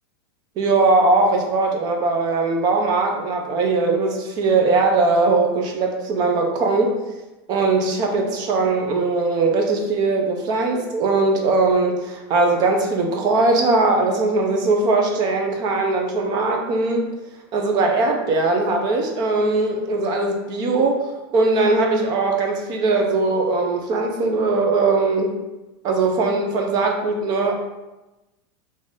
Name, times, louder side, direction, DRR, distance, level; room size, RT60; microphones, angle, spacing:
voice 1, 0.6-6.9 7.5-17.1 17.5-25.3 25.8-27.5, right 3 dB, 30° right, 2 dB, 0.6 m, -20 dB
3.7 x 2.7 x 3.5 m, 1.0 s
supercardioid pair, 165°, 14 cm